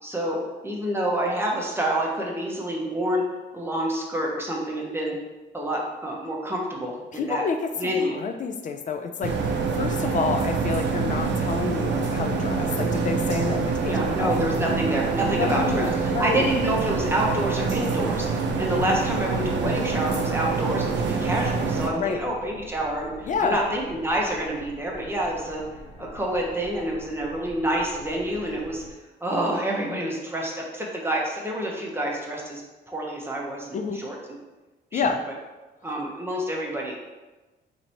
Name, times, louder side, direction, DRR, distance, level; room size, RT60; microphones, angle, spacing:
voice 1, 0.0-3.2 3.5-5.2 5.5-7.4 7.8-8.3 13.8-25.6 26.0-28.8 29.2-32.6 32.9-34.2 34.9-35.1 35.8-37.1, right 1 dB, 10° right, -2 dB, 0.8 m, -28 dB
voice 2, 7.1-14.3 15.4-16.5 19.6-19.9 22.0-22.2 23.2-23.7 33.7-34.0 34.9-35.2, left 5 dB, 40° left, 6 dB, 0.4 m, -29 dB
sound 1, 9.2-21.9, right 4 dB, 65° right, 0.6 m, -26 dB
sound 2, 9.7-28.9, equal, 80° left, 0.9 m, -44 dB
2.9 x 2.7 x 4.3 m, 1.2 s
cardioid pair, 90°, 20 cm